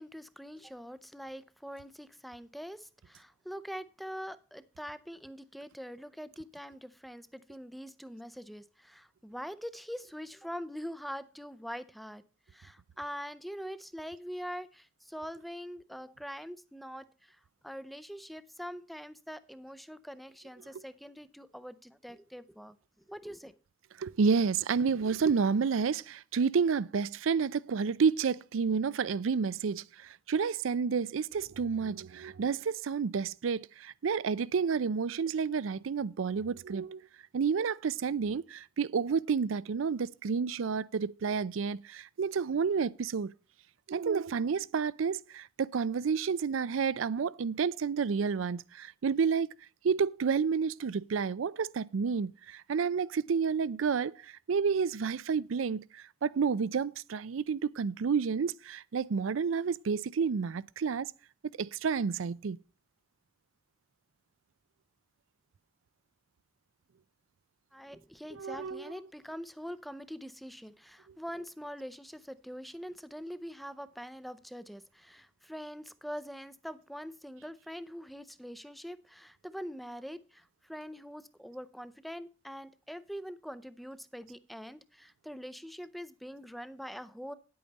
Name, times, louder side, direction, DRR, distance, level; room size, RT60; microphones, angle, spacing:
voice 1, 0.0-12.2 12.5-22.7 23.1-23.6 67.7-87.3, equal, ahead, 0.5 m, -44 dB
voice 2, 24.0-37.1 37.3-43.3 43.9-49.5 49.8-54.2 54.5-61.1 61.6-62.6 68.3-69.1, right 5 dB, 85° right, 0.4 m, -30 dB
10.0 x 8.6 x 4.0 m
head